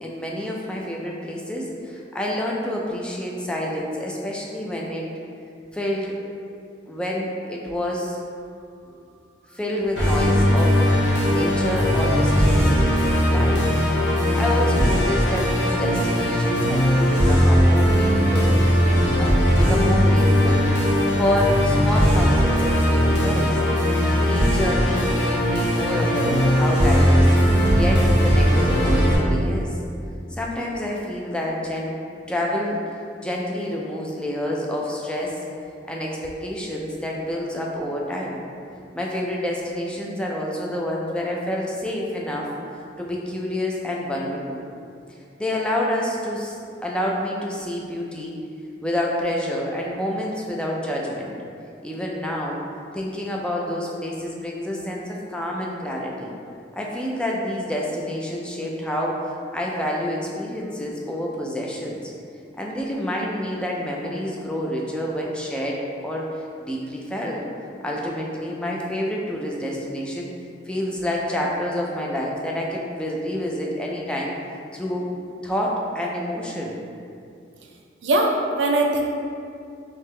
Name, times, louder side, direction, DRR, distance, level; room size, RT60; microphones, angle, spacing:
voice 1, 0.0-5.1 5.7-6.1 6.9-8.2 9.5-10.9 11.3-13.7 14.1-18.5 19.2-20.7 21.1-23.6 24.0-29.8 30.3-31.9 32.3-32.8 33.2-35.4 35.9-38.4 38.9-42.5 43.0-44.6 45.4-48.4 48.8-51.3 51.8-52.6 52.9-56.3 56.7-62.1 62.6-66.3 66.6-67.4 67.8-70.3 70.7-74.3 74.7-75.1 75.4-76.8, left 1 dB, 5° left, -2 dB, 0.3 m, -28 dB
Musical instrument, 10.0-29.2, equal, 90° left, 1.1 m, -19 dB
voice 2, 78.0-79.0, right 2 dB, 85° right, 0 dB, 0.5 m, -20 dB
3.5 x 2.8 x 3.2 m, 2.4 s
head